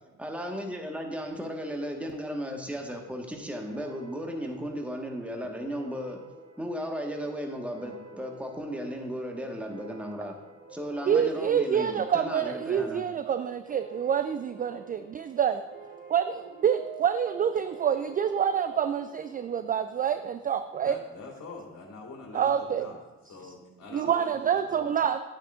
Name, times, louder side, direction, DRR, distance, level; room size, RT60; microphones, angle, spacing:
voice 1, 0.2-6.2 6.6-10.4 10.7-13.0, equal, 5° right, 2 dB, 1.5 m, -35 dB
sound 1, 3.7-20.8, right 6 dB, 40° right, 2.9 m, -48 dB
voice 2, 11.1-15.6 16.1-21.0 22.3-22.9 23.9-25.2, right 8 dB, 20° right, 10 dB, 0.3 m, -27 dB
voice 3, 20.8-23.0 23.3-24.8, left 3 dB, 30° left, -1 dB, 3.0 m, -45 dB
11.0 x 8.8 x 2.5 m, 1.2 s
hypercardioid pair, 50°, 46 cm